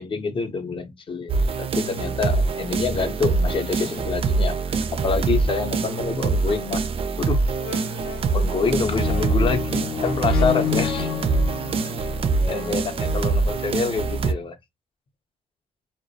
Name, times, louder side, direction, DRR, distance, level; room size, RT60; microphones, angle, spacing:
voice 1, 0.0-6.9 7.2-7.4 8.3-11.1 11.8-12.1 12.4-14.6, left 5 dB, 35° left, 0.5 m, -27 dB
sound 1, 1.3-14.3, right 4 dB, 40° right, 0.3 m, -24 dB
sound 2, 7.1-7.3 7.6-13.5 14.2-14.3, left 9 dB, 80° left, 0.6 m, -30 dB
2.3 x 2.0 x 2.6 m
cardioid pair, 105°, 14 cm